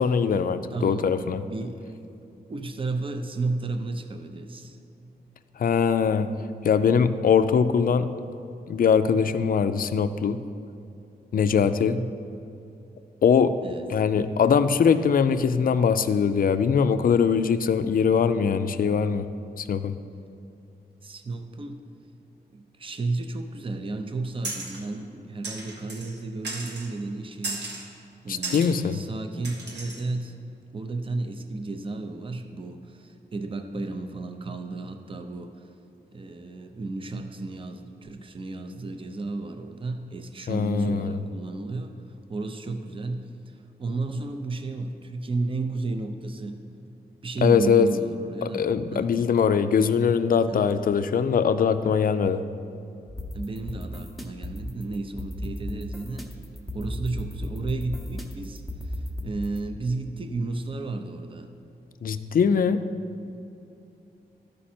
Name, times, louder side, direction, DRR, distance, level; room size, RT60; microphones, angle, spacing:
voice 1, 0.0-1.4 5.6-6.4 6.6-8.1 8.7-10.4 11.3-12.0 13.2-13.6 13.9-19.3 19.6-19.9 28.5-29.0 40.5-41.1 47.4-47.9 48.4-52.4 62.0-62.8, left 6 dB, 55° left, 11 dB, 0.4 m, -22 dB
voice 2, 0.7-2.0 2.5-4.8 11.6-12.2 13.6-13.9 21.0-21.8 22.5-27.7 28.2-30.4 30.7-35.7 36.1-46.7 47.2-49.2 50.5-50.7 53.3-56.4 56.7-61.5 63.2-63.4, right 3 dB, 30° right, 7 dB, 0.5 m, -33 dB
sound 1, 24.4-24.8 25.4-26.1 26.4-26.9 27.4-27.9 28.4-28.7 29.4-30.0, right 2 dB, 90° right, 1.3 m, -35 dB
sound 2, 53.1-59.6, left 1 dB, ahead, 0.8 m, -35 dB
12.5 x 5.2 x 4.3 m, 2.7 s
wide cardioid pair, 120°, 17 cm